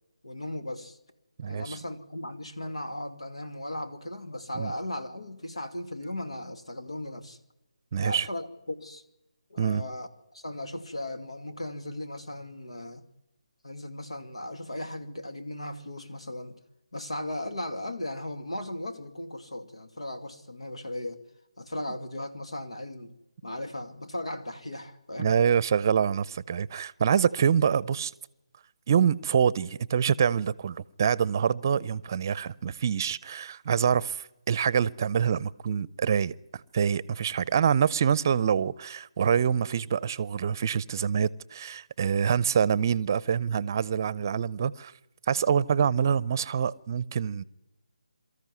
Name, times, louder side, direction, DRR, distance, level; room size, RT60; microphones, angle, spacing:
voice 1, 0.2-1.0 1.5-7.4 8.0-9.0 9.5-10.1 10.3-13.0 13.6-16.6 16.9-21.2 21.6-23.1 23.4-25.4, left 1 dB, 85° left, 2.5 m, -37 dB
voice 2, 1.4-1.8 4.6-4.7 7.9-8.3 9.6-9.8 25.2-28.1 28.9-44.9 45.3-47.4, right 7 dB, 35° right, 0.6 m, -26 dB
23.5 x 14.0 x 9.5 m
figure-of-eight pair, 155°, 3 cm